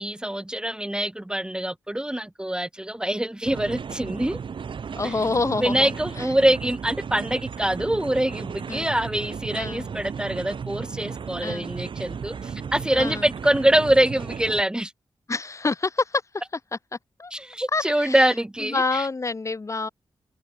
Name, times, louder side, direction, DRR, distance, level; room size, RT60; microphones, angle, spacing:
voice 1, 0.0-4.4 5.0-5.1 5.6-14.9 17.3-19.1, right 1 dB, 10° right, 1.3 m, -24 dB
sound 1, 3.4-14.6, right 6 dB, 70° right, 7.8 m, -35 dB
voice 2, 5.0-5.9 6.2-6.3 8.7-8.9 9.5-9.9 11.4-11.7 13.0-13.2 15.3-16.2 17.2-17.3 17.7-18.2 18.6-19.9, left 3 dB, 35° left, 1.7 m, -27 dB
cardioid pair, 85°, 9 cm